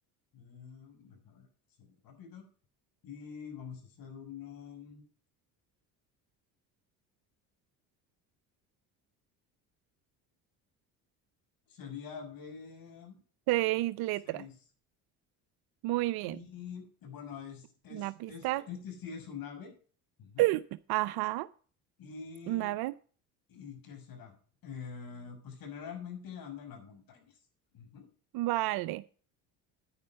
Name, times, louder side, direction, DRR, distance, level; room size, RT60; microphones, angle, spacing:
voice 1, 0.3-1.5 1.8-2.4 3.0-5.0 11.7-13.2 14.2-14.5 16.3-19.7 20.2-20.5 22.0-22.7 23.5-24.3 24.6-27.3 27.7-28.1, left 7 dB, 60° left, 4 dB, 6.5 m, -45 dB
voice 2, 13.5-14.4 15.8-16.4 17.9-18.6 20.4-20.6 20.9-21.5 22.5-22.9 28.3-29.0, right 18 dB, 70° right, 14 dB, 0.6 m, -30 dB
10.0 x 9.5 x 5.3 m, 0.41 s
supercardioid pair, 85°, 39 cm